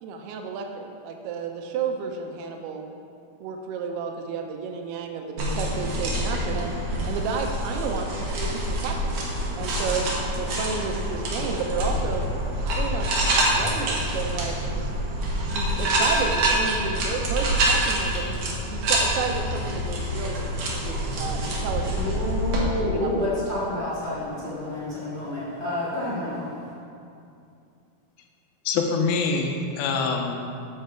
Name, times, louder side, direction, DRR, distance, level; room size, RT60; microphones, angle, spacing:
voice 1, 0.0-2.9 3.4-6.7 7.0-9.1 9.6-12.2 12.6-14.9 15.5-22.0 22.6-23.4, right 5 dB, 85° right, 3 dB, 2.7 m, -32 dB
sound 1, 5.4-22.6, right 1 dB, 65° right, 1.7 m, -26 dB
voice 2, 21.9-26.7, left 1 dB, 35° left, -9 dB, 1.0 m, -29 dB
voice 3, 28.7-30.3, left 4 dB, 80° left, 3 dB, 2.3 m, -24 dB
8.5 x 6.8 x 4.4 m, 2.6 s
omnidirectional pair, 4.6 m